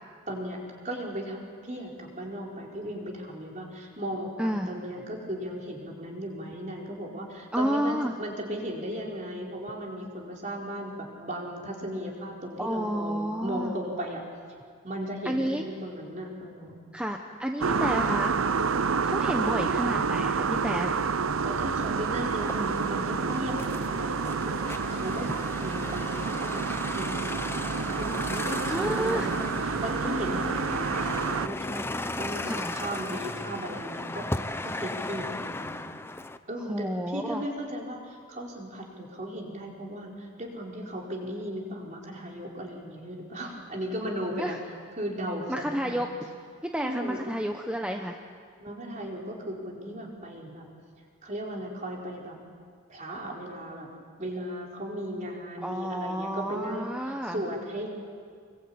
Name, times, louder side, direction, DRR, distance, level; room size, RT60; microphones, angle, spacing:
voice 1, 0.3-1.4 1.6-14.2 14.8-16.8 21.4-35.9 36.5-44.6 45.0-46.0 46.8-47.2 48.6-50.7 51.2-52.4 52.9-53.9 54.2-57.9, equal, 35° right, -1 dB, 4.5 m, -36 dB
voice 2, 4.4-4.7 7.5-8.1 12.6-13.7 15.2-15.6 16.9-18.3 19.0-21.0 28.7-29.3 32.5-32.7 36.7-37.4 44.4-44.6 45.5-46.1 46.6-48.2 55.6-57.4, equal, 5° right, 3 dB, 1.0 m, -30 dB
sound 1, 17.6-31.5, right 5 dB, 85° right, 0.7 m, -29 dB
sound 2, 21.5-36.4, left 2 dB, 10° left, 0.6 m, -37 dB
26.0 x 23.0 x 8.8 m, 2.1 s
head